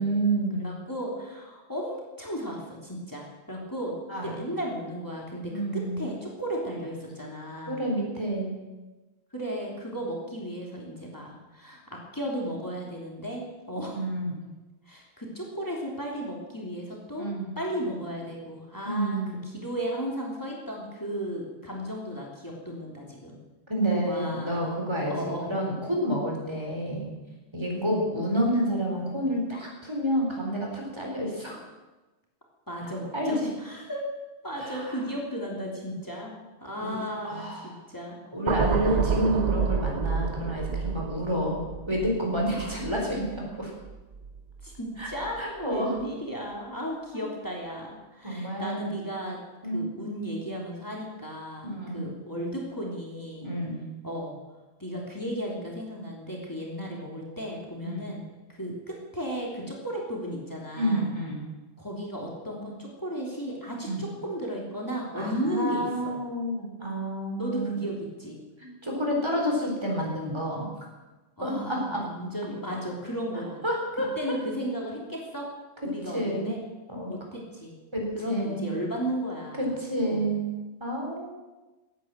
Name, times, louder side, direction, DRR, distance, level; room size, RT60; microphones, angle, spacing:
voice 1, 0.0-0.7 4.1-4.4 5.5-6.0 7.7-8.6 13.9-14.3 17.2-17.5 18.9-19.3 23.7-27.1 27.5-31.6 33.1-33.5 34.6-34.9 36.8-37.0 37.2-37.7 38.3-41.6 41.9-43.7 45.0-45.1 45.4-45.9 47.1-47.3 48.2-48.9 49.6-49.9 51.6-52.0 53.4-53.8 57.8-58.1 60.7-61.5 63.8-64.0 65.2-67.9 68.6-70.6 71.4-72.0 73.6-74.4 76.1-76.6 76.9-77.1 77.9-78.7 79.6-81.3, right 1 dB, 25° right, -1 dB, 4.2 m, -29 dB
voice 2, 0.6-3.9 4.2-7.8 9.3-14.0 14.9-17.3 17.5-19.2 19.4-23.3 24.0-24.8 25.1-25.5 27.7-28.0 32.7-34.0 34.4-38.2 42.5-42.7 44.6-49.4 49.7-53.5 54.0-54.3 54.8-58.2 58.5-61.1 61.8-66.1 67.4-68.4 71.4-73.6 74.2-75.5 75.8-76.6 77.1-77.8 78.1-79.7 80.0-80.3, equal, 15° left, -2 dB, 3.3 m, -35 dB
sound 1, 38.5-44.8 45.1-45.4, right 5 dB, 45° right, 0.7 m, -30 dB
16.5 x 9.6 x 7.6 m, 1.2 s
omnidirectional pair, 1.1 m